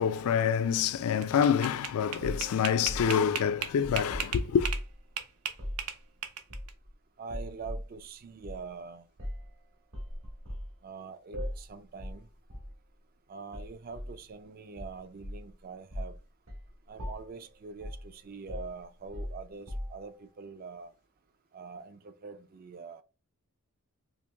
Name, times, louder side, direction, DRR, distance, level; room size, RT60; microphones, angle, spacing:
voice 1, 0.0-4.7, left 7 dB, 75° left, 0.3 m, -27 dB
sound 1, 1.0-4.9 5.2-6.7, right 7 dB, 85° right, 0.7 m, -36 dB
sound 2, 2.2-5.0 5.5-5.8 6.5-6.9 7.3-7.9 8.4-8.6 9.2-9.5 9.9-10.7 11.3-11.7 12.0-12.2 12.5-12.7 13.5-14.2 14.8-15.5 15.9-16.2 16.5-16.7 17.0-17.4 17.8-18.1 18.5-20.1, equal, 65° right, 1.3 m, -39 dB
voice 2, 7.2-9.0 10.8-12.3 13.3-16.2 16.9-20.9 21.5-23.0, right 5 dB, 40° right, 0.3 m, -44 dB
4.5 x 2.9 x 2.2 m
head